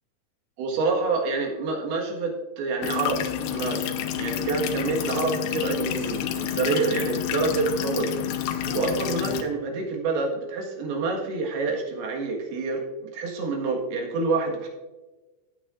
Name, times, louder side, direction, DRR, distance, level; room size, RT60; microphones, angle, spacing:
voice 1, 0.6-3.8 4.2-8.1 8.7-14.7, right 3 dB, 75° right, 0 dB, 3.5 m, -27 dB
sound 1, 2.8-9.4, left 10 dB, 80° left, 2.7 m, -29 dB
14.5 x 9.2 x 2.5 m, 1.2 s
omnidirectional pair, 4.6 m